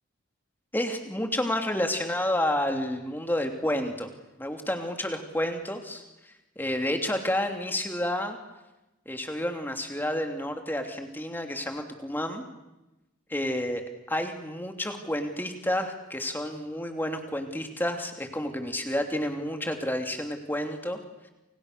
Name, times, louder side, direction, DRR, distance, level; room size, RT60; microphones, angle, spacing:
voice 1, 0.7-4.1 4.4-8.4 9.1-12.4 13.3-13.8 14.1-21.0, left 1 dB, 10° left, 5 dB, 2.9 m, -30 dB
29.0 x 29.0 x 6.8 m, 1.0 s
head